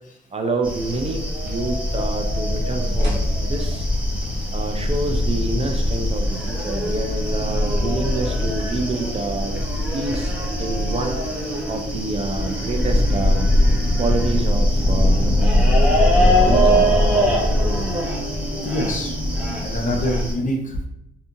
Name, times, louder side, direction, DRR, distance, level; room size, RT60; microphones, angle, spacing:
voice 1, 0.3-3.9 4.5-9.5 9.9-10.3 10.6-11.2 11.7-13.5 14.0-15.8 16.1-16.9, right 3 dB, 30° right, 4 dB, 0.4 m, -27 dB
sound 1, 0.6-20.3, left 1 dB, 5° right, 0.7 m, -21 dB
sound 2, 3.0-3.3 6.2-6.8 8.3-9.0, right 1 dB, 60° right, 1.1 m, -40 dB
sound 3, 3.9-19.6, right 2 dB, 85° right, 0.5 m, -36 dB
voice 2, 18.6-19.1 19.6-20.8, equal, 40° left, 0 dB, 0.7 m, -25 dB
2.7 x 2.5 x 2.5 m, 0.82 s
cardioid pair, 90°, 20 cm